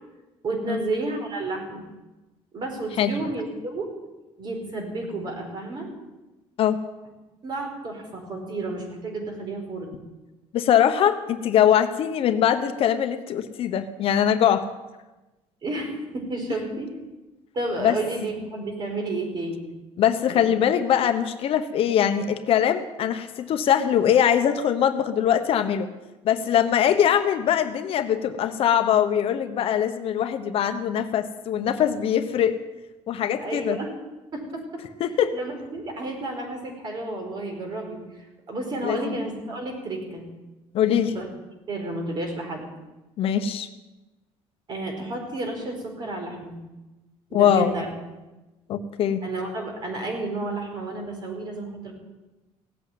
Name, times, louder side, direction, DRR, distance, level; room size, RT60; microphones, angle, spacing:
voice 1, 0.4-1.9 2.5-3.9 4.4-5.9 7.4-10.0 15.6-16.9 17.5-19.7 20.3-20.4 33.4-33.9 34.3-34.8 35.3-38.0 38.5-40.2 41.1-41.3 41.7-42.6 44.7-46.5 47.3-47.9 49.2-51.9, right 2 dB, 40° right, 2 dB, 4.7 m, -31 dB
voice 2, 10.5-14.7 17.8-18.0 20.0-25.9 26.2-32.6 33.1-33.8 35.0-35.4 38.8-39.2 40.7-41.1 43.2-43.7 47.3-47.7 48.7-49.2, left 9 dB, 55° left, 8 dB, 1.1 m, -22 dB
17.5 x 8.4 x 9.4 m, 1.1 s
cardioid pair, 135°, 11 cm